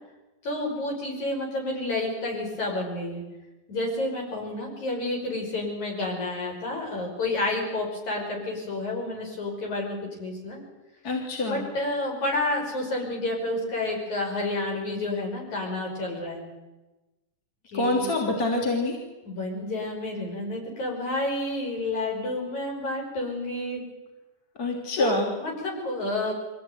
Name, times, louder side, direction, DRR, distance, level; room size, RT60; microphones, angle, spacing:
voice 1, 0.4-3.2 3.7-10.6 11.0-11.2 11.4-16.4 17.7-18.1 19.2-23.8 25.0-26.3, left 2 dB, 55° left, 0 dB, 7.1 m, -30 dB
voice 2, 11.0-11.6 17.7-19.0 24.6-25.3, left 2 dB, 25° left, 0 dB, 3.5 m, -26 dB
24.0 x 16.0 x 9.5 m, 1.1 s
omnidirectional pair, 4.1 m